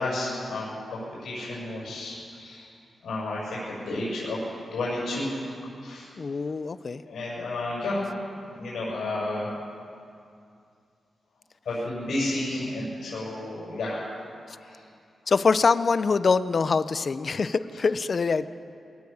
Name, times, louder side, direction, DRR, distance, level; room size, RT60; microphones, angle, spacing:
voice 1, 0.0-2.7 3.0-4.4 4.7-5.4 5.8-6.1 7.1-9.6 11.6-14.1 14.5-14.7, left 2 dB, 90° left, -7 dB, 7.7 m, -31 dB
voice 2, 6.2-7.0 15.3-18.4, left 4 dB, 45° left, 13 dB, 0.7 m, -24 dB
22.5 x 17.5 x 7.2 m, 2.4 s
wide cardioid pair, 125°, 0 cm